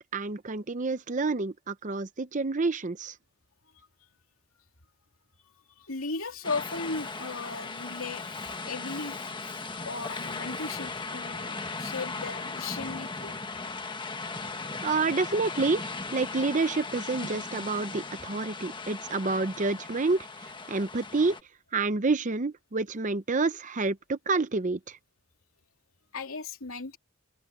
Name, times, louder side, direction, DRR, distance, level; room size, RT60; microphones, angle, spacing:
voice 1, 0.0-3.1 14.8-15.8 16.1-21.4 21.7-25.0, right 3 dB, 35° right, 0.7 m, -28 dB
voice 2, 5.8-13.4 26.1-27.0, left 3 dB, 75° left, 2.9 m, -37 dB
sound 1, 6.4-21.4, left 3 dB, 20° left, 1.4 m, -37 dB
head